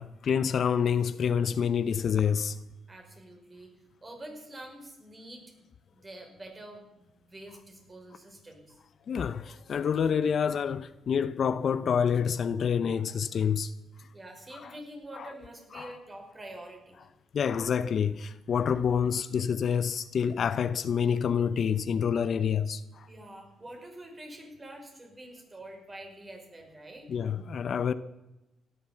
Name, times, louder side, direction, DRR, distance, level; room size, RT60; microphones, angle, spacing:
voice 1, 0.0-2.6 9.1-13.7 14.5-14.7 15.1-15.3 15.7-15.9 17.0-17.1 17.3-23.1 27.1-27.9, left 7 dB, 55° left, 0.7 m, -27 dB
voice 2, 2.9-3.7 4.0-5.5 5.9-8.8 14.1-17.1 23.1-27.1, right 1 dB, 25° right, 5.1 m, -46 dB
17.0 x 11.5 x 7.2 m
cardioid pair, 90°, 0 cm